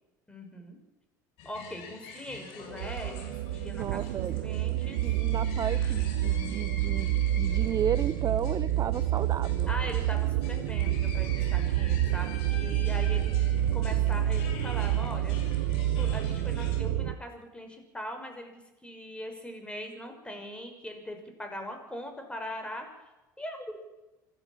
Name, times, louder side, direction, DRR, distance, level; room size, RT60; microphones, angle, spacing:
voice 1, 0.3-0.8 1.4-4.0 4.4-5.0 9.7-13.3 13.7-15.4 16.0-22.9 23.4-23.8, equal, 10° left, 5 dB, 6.1 m, -41 dB
sound 1, 1.4-16.8, left 4 dB, 65° left, 6.2 m, -46 dB
sound 2, 2.7-17.2, right 12 dB, 75° right, 0.8 m, -28 dB
voice 2, 3.8-4.4 5.0-9.7, right 8 dB, 35° right, 15 dB, 0.7 m, -33 dB
26.5 x 13.5 x 7.5 m, 1.0 s
hypercardioid pair, 75°, 10 cm